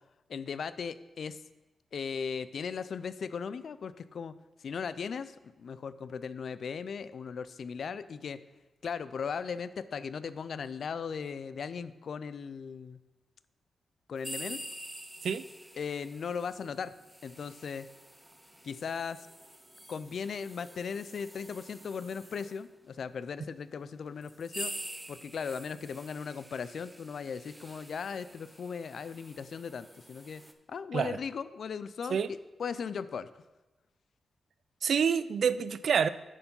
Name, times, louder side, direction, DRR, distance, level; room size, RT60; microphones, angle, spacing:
voice 1, 0.3-1.4 1.9-4.3 4.6-8.4 8.8-13.0 14.1-14.6 15.7-16.9 17.2-17.9 18.6-19.3 19.9-24.7 25.1-30.4 30.7-33.3, left 6 dB, 60° left, 15 dB, 0.4 m, -38 dB
sound 1, 14.2-22.6 23.4-23.5 24.2-30.5, right 1 dB, 5° right, 0.5 m, -47 dB
voice 2, 34.8-36.1, right 7 dB, 65° right, 15 dB, 0.3 m, -27 dB
9.7 x 4.6 x 5.4 m, 1.1 s
wide cardioid pair, 145°, 0 cm